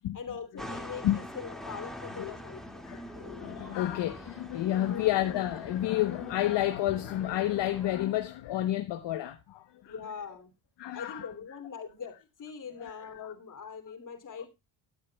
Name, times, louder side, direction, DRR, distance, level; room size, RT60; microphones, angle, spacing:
voice 1, 0.1-2.8 4.7-5.1 9.8-10.5 10.9-14.5, left 6 dB, 40° left, 2.8 m, -42 dB
sound 1, 0.6-7.9, equal, ahead, 2.1 m, -44 dB
voice 2, 2.8-9.9 10.8-11.3 12.8-13.3, left 13 dB, 60° left, 1.0 m, -30 dB
18.0 x 8.4 x 2.3 m
cardioid pair, 90°, 47 cm